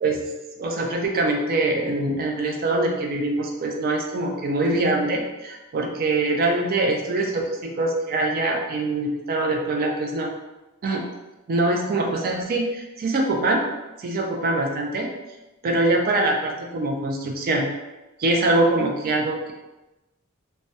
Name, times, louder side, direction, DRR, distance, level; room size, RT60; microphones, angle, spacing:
voice 1, 0.6-10.3 10.8-11.1 11.5-13.6 14.0-15.1 15.6-17.6 18.2-19.5, right 2 dB, 45° right, 2 dB, 0.4 m, -23 dB
2.2 x 2.1 x 2.7 m, 1.0 s
head